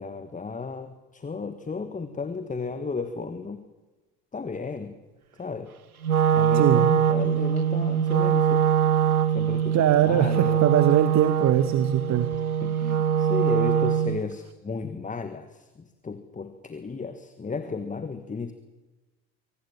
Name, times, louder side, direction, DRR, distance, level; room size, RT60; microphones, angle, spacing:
voice 1, 0.0-3.6 4.3-4.9 5.4-5.7 6.3-8.7 9.3-10.7 12.6-18.5, left 4 dB, 20° left, 10 dB, 1.5 m, -34 dB
Wind instrument woodwind instrument, 6.0-14.2, right 8 dB, 85° right, 1.0 m, -23 dB
voice 2, 6.5-6.9 9.7-12.3, right 11 dB, 40° right, 13 dB, 1.1 m, -22 dB
24.0 x 19.0 x 7.3 m, 1.2 s
figure-of-eight pair, 60°, 43 cm